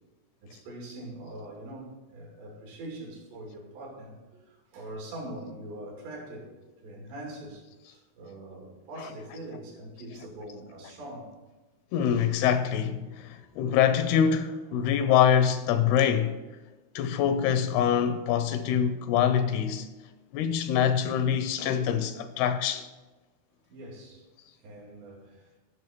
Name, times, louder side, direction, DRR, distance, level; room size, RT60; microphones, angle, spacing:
voice 1, 0.4-6.5 6.8-11.3 23.7-24.2 24.6-25.5, right 1 dB, 85° right, 5.0 m, -43 dB
voice 2, 11.9-16.4 17.0-19.9 20.3-22.9, left 8 dB, 80° left, 2.4 m, -25 dB
15.0 x 6.7 x 4.5 m
omnidirectional pair, 4.8 m